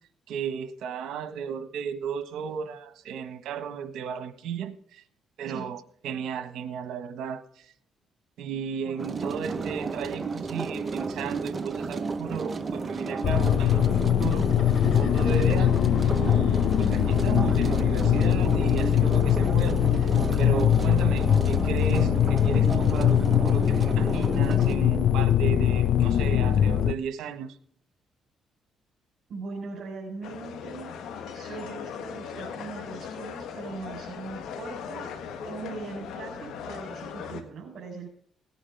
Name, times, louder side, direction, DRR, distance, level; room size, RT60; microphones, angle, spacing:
voice 1, 0.3-5.0 5.4-7.6 8.4-14.5 14.8-15.7 16.0-20.1 20.4-27.5, right 7 dB, 80° right, 10 dB, 1.5 m, -34 dB
voice 2, 8.8-9.6 15.2-15.5 21.1-21.8 29.3-30.9 31.3-35.2 35.4-38.1, right 4 dB, 55° right, -2 dB, 4.5 m, -40 dB
sound 1, 9.0-24.7, right 4 dB, 30° right, 1.2 m, -32 dB
sound 2, 13.2-26.9, left 10 dB, 65° left, 0.4 m, -22 dB
sound 3, 30.2-37.4, left 7 dB, 80° left, 1.6 m, -39 dB
18.5 x 10.0 x 3.5 m, 0.62 s
cardioid pair, 90°, 0 cm